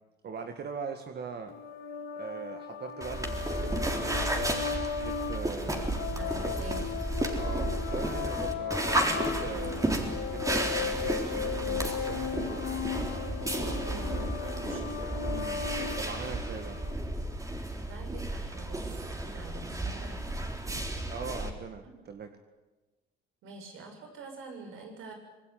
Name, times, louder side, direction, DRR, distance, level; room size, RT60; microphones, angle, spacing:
voice 1, 0.2-1.5 2.1-4.6 5.0-5.9 6.4-6.5 7.4-10.0 10.3-12.5 13.5-13.7 15.3-15.7 15.9-16.8 20.6-20.8 21.1-22.3, right 6 dB, 55° right, 6 dB, 2.1 m, -41 dB
sound 1, 1.5-16.9, left 7 dB, 80° left, 3.9 m, -36 dB
sound 2, 3.0-21.5, right 1 dB, 15° right, 3.9 m, -33 dB
voice 2, 6.1-6.9 13.4-15.1 17.8-20.2 21.8-21.9 23.4-25.1, right 3 dB, 90° right, 4 dB, 6.8 m, -46 dB
26.0 x 20.0 x 9.5 m, 1.2 s
cardioid pair, 90°, 20 cm